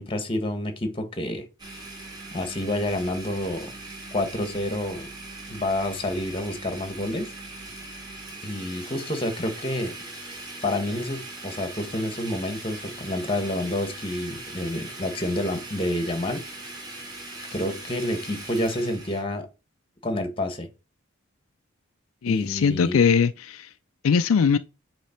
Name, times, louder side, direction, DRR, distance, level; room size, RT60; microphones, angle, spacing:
voice 1, 0.0-1.4 2.3-3.7 4.1-5.1 5.5-7.3 8.4-10.0 10.6-16.4 17.5-19.5 20.0-20.7 22.3-23.0, left 1 dB, 25° left, 1.2 m, -28 dB
Domestic sounds home sounds, 1.6-19.2, right 2 dB, 20° right, 2.1 m, -40 dB
voice 2, 22.2-23.7 24.0-24.6, left 6 dB, 75° left, 0.4 m, -21 dB
8.2 x 3.2 x 4.4 m
head